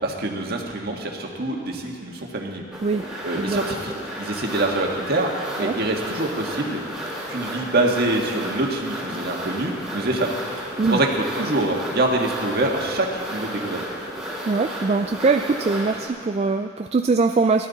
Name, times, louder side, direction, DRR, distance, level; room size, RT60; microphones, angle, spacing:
voice 1, 0.0-2.6 3.2-6.8 7.3-10.3 10.9-13.8, right 2 dB, 55° right, 1 dB, 1.6 m, -25 dB
sound 1, 2.7-16.1, equal, 5° right, 2.5 m, -33 dB
voice 2, 14.4-17.7, right 4 dB, 35° right, 6 dB, 0.4 m, -22 dB
18.5 x 12.0 x 4.1 m, 2.2 s
head